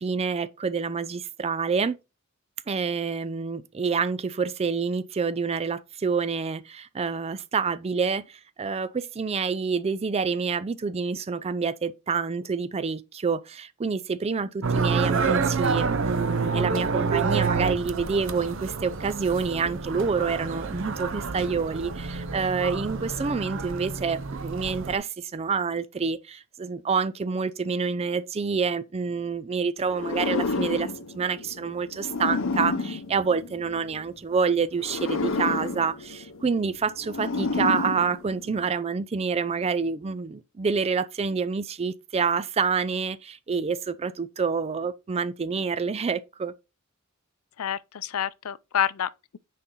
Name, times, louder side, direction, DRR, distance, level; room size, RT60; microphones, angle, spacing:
voice 1, 0.0-2.0 2.7-46.5, right 5 dB, 30° right, 0.4 m, -27 dB
sound 1, 14.6-25.0, right 4 dB, 65° right, 0.7 m, -28 dB
sound 2, 29.9-34.0 34.7-38.7, left 3 dB, 65° left, 0.9 m, -30 dB
voice 2, 47.6-49.4, left 9 dB, 90° left, 0.5 m, -28 dB
9.8 x 4.2 x 3.8 m
head